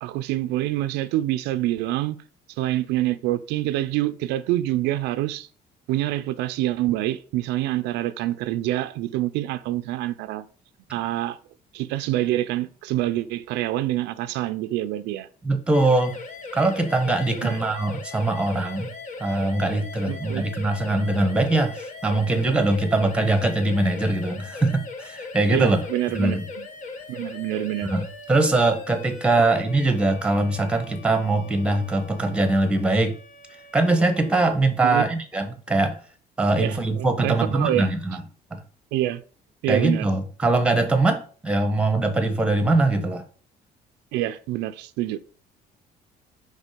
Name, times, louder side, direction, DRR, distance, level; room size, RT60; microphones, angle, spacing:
voice 1, 0.0-2.2 2.6-5.5 5.9-10.5 10.9-11.4 11.7-15.3 17.4-17.6 20.1-20.4 25.5-26.7 27.1-27.9 34.8-35.0 36.6-37.9 38.9-39.2 39.6-40.1 44.1-45.2, right 15 dB, 90° right, 0.4 m, -26 dB
voice 2, 15.4-16.2 16.5-18.9 19.2-25.8 26.1-26.4 27.8-33.2 33.7-35.9 36.4-38.2 38.5-38.6 39.7-43.2, right 2 dB, 5° right, 1.1 m, -22 dB
sound 1, 15.7-34.4, left 3 dB, 50° left, 1.1 m, -39 dB
5.2 x 3.9 x 5.0 m
cardioid pair, 110°, 17 cm